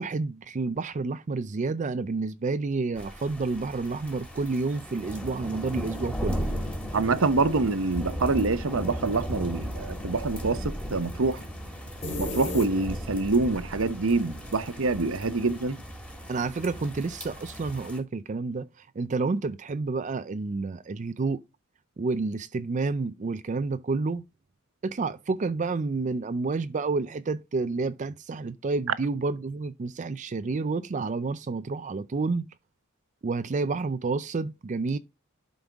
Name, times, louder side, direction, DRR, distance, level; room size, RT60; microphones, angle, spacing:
voice 1, 0.0-6.5 16.3-21.4 22.0-24.2 24.8-32.5 33.2-35.0, right 3 dB, 35° right, 0.4 m, -29 dB
sound 1, 3.0-18.0, equal, 5° left, 1.8 m, -36 dB
voice 2, 6.9-11.4 12.2-15.8, right 3 dB, 65° right, 0.8 m, -26 dB
sound 2, 12.0-13.3, left 2 dB, 35° left, 2.8 m, -33 dB
11.5 x 5.3 x 3.5 m
head